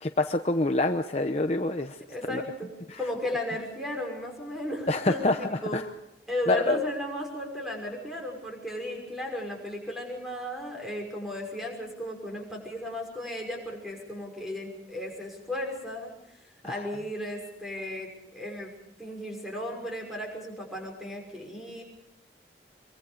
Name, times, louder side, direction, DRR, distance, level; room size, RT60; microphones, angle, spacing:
voice 1, 0.0-2.0 2.3-2.4 2.9-3.0 4.9-5.8 6.5-6.8 16.6-16.9, left 2 dB, 35° left, 6 dB, 0.8 m, -26 dB
voice 2, 2.1-2.7 3.0-5.8 6.3-16.1 16.6-18.7 19.0-21.8, left 1 dB, ahead, 0 dB, 6.0 m, -35 dB
24.5 x 24.0 x 5.2 m, 0.88 s
head